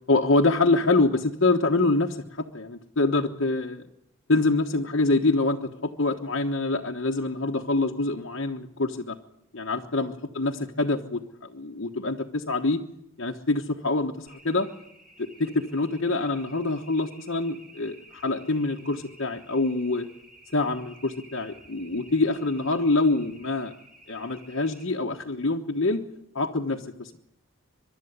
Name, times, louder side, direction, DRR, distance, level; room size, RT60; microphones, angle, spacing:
voice 1, 0.1-3.8 4.3-9.2 9.5-11.2 11.5-12.8 13.2-14.7 15.2-20.1 20.5-23.7 24.1-26.0 26.3-27.2, left 2 dB, 65° left, 2 dB, 1.2 m, -25 dB
sound 1, 14.3-24.9, right 1 dB, ahead, 3.3 m, -53 dB
23.5 x 12.0 x 9.7 m, 0.81 s
head